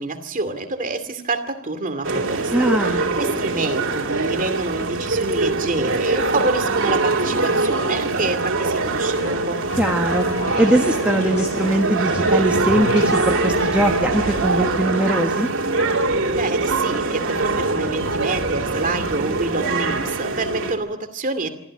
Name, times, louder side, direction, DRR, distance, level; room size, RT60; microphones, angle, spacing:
voice 1, 0.0-9.6 16.4-21.5, right 3 dB, 40° right, 8 dB, 2.4 m, -27 dB
sound 1, 2.0-20.7, right 3 dB, 65° right, 3.0 m, -23 dB
voice 2, 2.5-3.2 9.8-10.2 10.6-15.5, right 1 dB, 5° right, 1 dB, 1.4 m, -21 dB
sound 2, 9.2-14.5, left 2 dB, 90° left, 7.5 m, -31 dB
24.0 x 15.0 x 8.7 m, 0.79 s
head